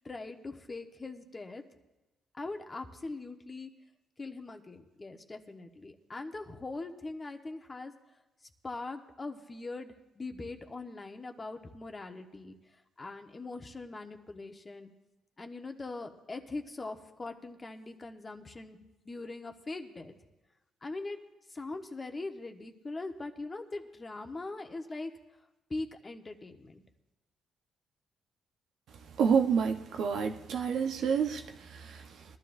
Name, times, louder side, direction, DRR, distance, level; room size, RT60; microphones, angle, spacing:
voice 1, 0.0-1.6 2.3-3.7 4.2-7.9 8.6-12.6 13.0-14.9 15.4-18.8 19.0-20.1 20.8-21.2 21.5-25.1 25.7-26.8, left 3 dB, 25° left, 5 dB, 1.2 m, -41 dB
voice 2, 29.1-32.2, right 6 dB, 75° right, 5 dB, 0.9 m, -29 dB
21.5 x 12.5 x 2.6 m, 1.0 s
cardioid pair, 90°, 0 cm